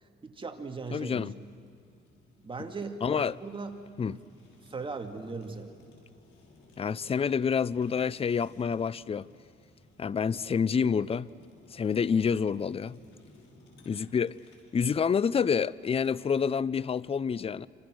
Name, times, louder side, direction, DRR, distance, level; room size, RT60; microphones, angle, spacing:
voice 1, 0.2-1.3 2.4-4.2 4.6-5.7, right 4 dB, 25° right, 2.3 m, -39 dB
voice 2, 0.9-1.3 3.0-3.3 4.0-4.2 6.8-9.3 10.0-11.3 11.7-13.0 13.9-14.4 14.7-17.7, left 6 dB, 30° left, 0.5 m, -28 dB
Fire, 1.2-16.3, left 1 dB, 85° left, 6.0 m, -59 dB
28.0 x 25.5 x 6.3 m
cardioid pair, 90°, 20 cm